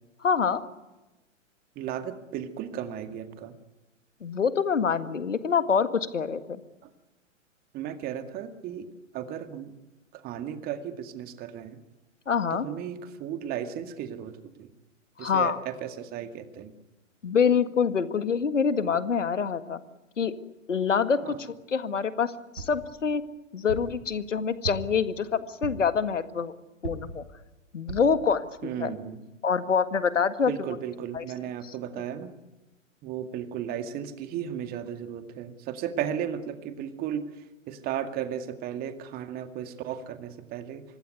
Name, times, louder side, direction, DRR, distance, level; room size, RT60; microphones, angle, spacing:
voice 1, 0.2-0.6 4.2-6.6 12.3-12.7 15.2-15.6 17.2-19.8 20.2-20.3 20.7-23.2 23.5-26.5 26.8-27.2 27.7-28.9 29.4-30.8 31.1-31.2 31.6-31.7, left 6 dB, 70° left, 11 dB, 2.0 m, -26 dB
voice 2, 1.8-3.5 6.8-6.9 7.7-8.9 9.1-9.7 10.1-11.8 12.5-14.7 15.2-16.7 21.2-21.4 28.6-29.2 30.4-32.3 33.0-40.8, right 9 dB, 25° right, 8 dB, 2.1 m, -35 dB
sound 1, 22.6-22.9 23.7-24.0 24.6-25.1 25.6-26.0 26.8-27.2 27.9-28.2 28.7-28.8 29.1-29.2, right 3 dB, 60° right, 6.9 m, -37 dB
25.5 x 20.0 x 9.5 m, 1.1 s
figure-of-eight pair, 115°, 39 cm